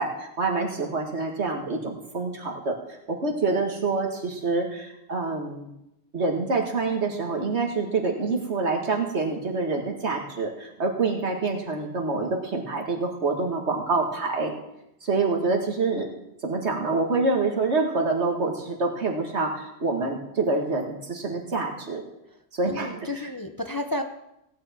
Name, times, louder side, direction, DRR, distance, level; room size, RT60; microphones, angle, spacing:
voice 1, 0.0-2.8 3.1-5.7 6.1-14.5 15.0-16.1 16.4-22.0 22.5-23.3, right 3 dB, 80° right, 1 dB, 2.2 m, -26 dB
voice 2, 22.6-24.0, left 2 dB, 25° left, 6 dB, 0.6 m, -31 dB
16.5 x 9.4 x 4.4 m, 0.85 s
omnidirectional pair, 1.1 m